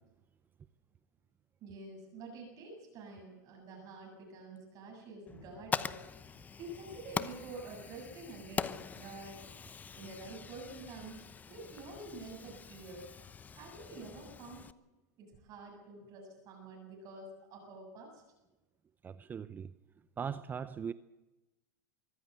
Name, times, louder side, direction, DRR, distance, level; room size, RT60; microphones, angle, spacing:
voice 1, 1.6-6.0 6.6-9.4 10.0-13.1 13.5-14.7 15.2-18.2, right 2 dB, 40° right, 0 dB, 7.9 m, -48 dB
Fire, 5.3-14.7, left 6 dB, 20° left, 0.8 m, -43 dB
voice 2, 19.0-19.7 20.2-20.9, right 7 dB, 20° right, 15 dB, 0.6 m, -39 dB
24.5 x 14.5 x 8.2 m, 1.1 s
hypercardioid pair, 125°, 9 cm